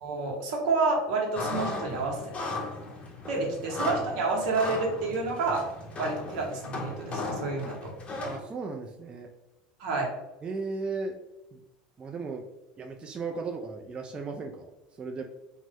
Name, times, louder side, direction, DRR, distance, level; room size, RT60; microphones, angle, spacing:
voice 1, 0.0-2.2 2.4-2.5 3.3-5.7 6.0-7.9 9.8-10.1, right 3 dB, 75° right, 0 dB, 0.9 m, -29 dB
sound 1, 1.3-8.4, left 2 dB, 30° left, 0.7 m, -36 dB
voice 2, 8.2-9.3 10.4-11.2 11.5-11.6 12.0-12.4 12.8-14.7 15.0-15.2, right 4 dB, 25° right, 3 dB, 0.4 m, -36 dB
2.7 x 2.1 x 3.4 m, 0.97 s
hypercardioid pair, 95°, 4 cm